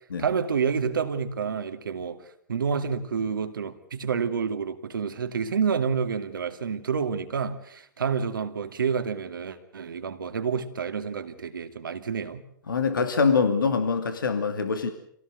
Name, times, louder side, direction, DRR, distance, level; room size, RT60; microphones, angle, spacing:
voice 1, 0.2-2.2 2.5-12.4, right 6 dB, 80° right, 2.4 m, -29 dB
voice 2, 12.7-14.9, left 5 dB, 85° left, 2.5 m, -24 dB
26.5 x 17.5 x 8.0 m
hypercardioid pair, 115°, 11 cm